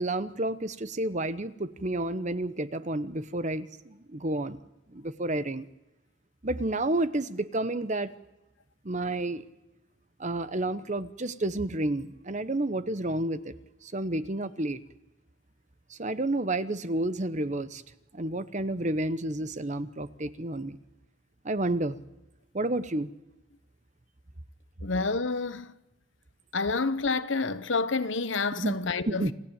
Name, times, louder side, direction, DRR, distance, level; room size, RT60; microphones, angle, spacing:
voice 1, 0.0-4.6 4.9-5.7 6.4-8.1 8.8-9.4 10.2-13.5 13.8-14.8 15.9-17.8 18.1-20.8 21.4-22.0 22.5-23.1 28.6-28.7 29.1-29.3, right 1 dB, 35° right, 0.9 m, -30 dB
voice 2, 24.8-25.7 26.5-29.3, left 4 dB, 65° left, 1.0 m, -28 dB
28.0 x 15.0 x 8.9 m
head